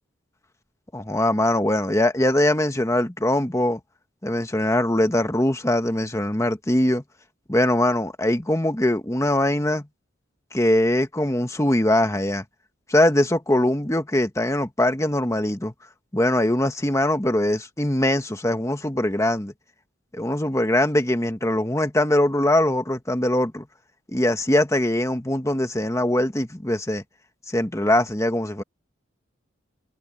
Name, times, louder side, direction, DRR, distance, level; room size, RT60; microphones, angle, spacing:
voice 1, 0.9-3.8 4.2-7.0 7.5-9.9 10.5-12.4 12.9-15.7 16.1-19.5 20.1-23.7 24.1-27.0 27.5-28.6, left 1 dB, 15° left, 1.4 m, -22 dB
head